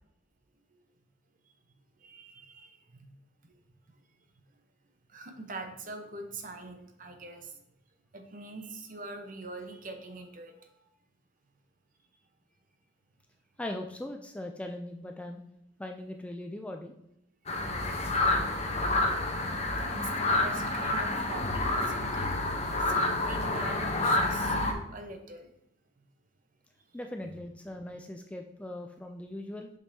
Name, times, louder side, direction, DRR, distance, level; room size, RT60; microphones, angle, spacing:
voice 1, 2.0-3.0 5.1-7.6 8.1-10.5 10.8-10.9 19.8-22.3 22.8-25.5, right 2 dB, 45° right, 5 dB, 0.9 m, -44 dB
voice 2, 13.6-15.4 15.8-16.9 26.9-29.7, left 1 dB, 5° left, 4 dB, 0.3 m, -40 dB
sound 1, 17.5-24.7, left 2 dB, 35° left, 0.9 m, -29 dB
7.4 x 5.3 x 2.8 m, 0.80 s
head